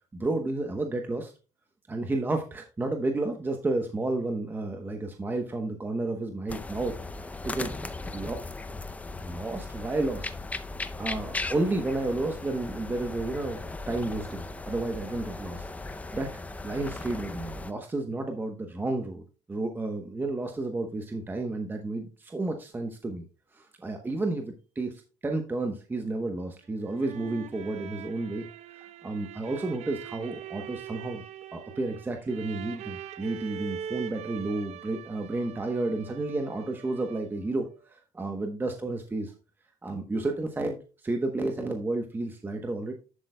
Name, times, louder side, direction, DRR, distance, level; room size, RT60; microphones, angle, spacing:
voice 1, 0.1-1.3 1.9-6.9 7.4-7.7 8.1-8.4 9.2-10.3 11.0-13.6 13.9-16.3 16.6-19.2 19.5-23.2 23.5-28.5 28.7-31.2 31.5-39.3 39.8-42.9, right 2 dB, 15° right, 4 dB, 0.9 m, -31 dB
sound 1, 6.5-17.7, left 3 dB, 10° left, 0.5 m, -37 dB
sound 2, 26.6-37.5, right 9 dB, 60° right, 0.8 m, -42 dB
11.0 x 7.9 x 2.2 m, 0.33 s
cardioid pair, 135°, 13 cm